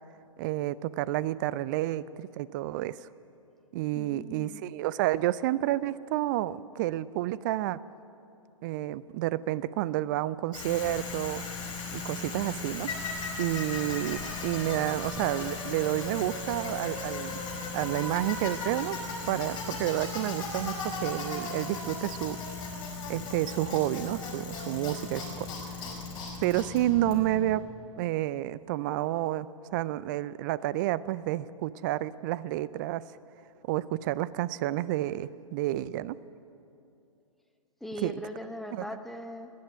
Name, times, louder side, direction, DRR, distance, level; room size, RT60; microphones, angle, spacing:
voice 1, 0.4-3.1 3.7-7.8 8.6-11.4 11.9-12.9 13.4-17.4 17.7-19.0 19.3-22.4 23.1-25.5 26.4-27.7 28.0-33.1 33.6-36.2 38.0-38.1 38.7-38.8, right 15 dB, 35° right, 17 dB, 0.4 m, -30 dB
voice 2, 3.9-4.6 37.8-39.5, left 1 dB, ahead, 5 dB, 1.0 m, -40 dB
Bicycle, 10.5-27.6, left 4 dB, 25° left, 5.0 m, -37 dB
15.0 x 10.5 x 8.8 m, 2.7 s
figure-of-eight pair, 115°, 17 cm